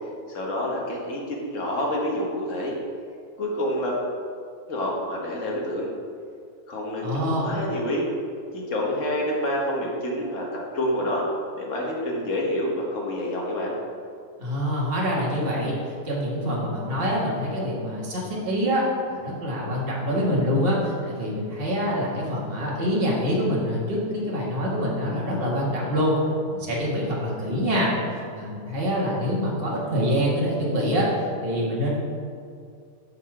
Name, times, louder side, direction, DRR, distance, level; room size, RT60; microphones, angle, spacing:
voice 1, 0.3-2.7 3.4-3.9 4.7-5.9 6.7-8.1 8.5-11.3 11.6-13.7, left 1 dB, 60° left, -2 dB, 1.4 m, -28 dB
voice 2, 7.0-7.6 14.4-15.7 16.0-26.2 26.5-27.9 28.3-31.1 31.4-31.9, equal, 40° right, -4 dB, 1.6 m, -25 dB
5.5 x 5.5 x 4.7 m, 2.3 s
omnidirectional pair, 1.5 m